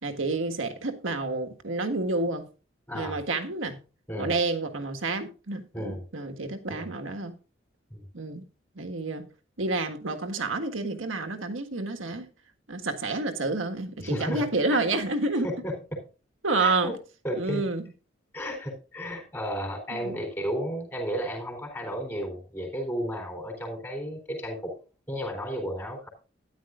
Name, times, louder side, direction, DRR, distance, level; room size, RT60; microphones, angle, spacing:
voice 1, 0.0-2.5 2.9-3.8 4.2-7.4 8.1-8.5 8.7-9.3 9.6-12.3 12.7-15.5 16.4-16.9 17.4-17.9 19.9-20.2, right 3 dB, 85° right, 1.7 m, -29 dB
voice 2, 2.9-3.2 4.1-4.3 5.7-6.0 6.7-6.9 7.9-8.1 14.0-14.5 15.4-16.0 16.6-16.9 17.2-17.6 18.3-24.7 25.1-26.1, equal, 10° left, 3.8 m, -33 dB
13.0 x 10.5 x 2.5 m
head